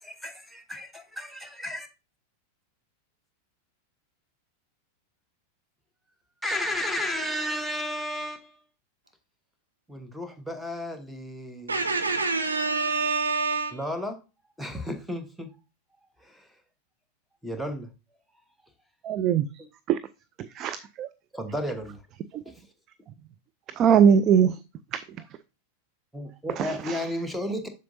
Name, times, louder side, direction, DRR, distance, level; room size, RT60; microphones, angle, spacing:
voice 1, 0.0-1.9 6.4-8.6 9.9-11.8 13.7-14.2 14.6-15.6 16.2-16.5 17.4-17.9 21.3-22.0 22.5-22.6 26.1-27.7, left 1 dB, ahead, 1.1 m, -33 dB
voice 2, 11.7-13.8, right 4 dB, 80° right, 1.1 m, -26 dB
voice 3, 19.0-19.5 19.9-20.0 20.6-21.1 23.8-24.5 24.9-25.0 26.6-27.0, right 8 dB, 35° right, 0.4 m, -21 dB
7.5 x 6.4 x 2.6 m
figure-of-eight pair, 90°, 0 cm